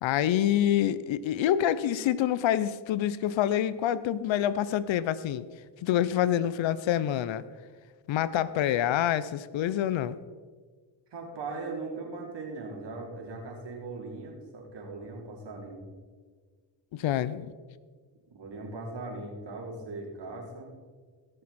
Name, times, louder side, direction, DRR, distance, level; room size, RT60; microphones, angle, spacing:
voice 1, 0.0-5.5 5.8-7.4 8.1-10.2 16.9-17.5, left 11 dB, 65° left, 17 dB, 0.7 m, -26 dB
voice 2, 11.1-15.8 18.3-20.7, right 3 dB, 55° right, -1 dB, 3.5 m, -39 dB
17.5 x 6.7 x 4.3 m, 1.5 s
supercardioid pair, 55°, 49 cm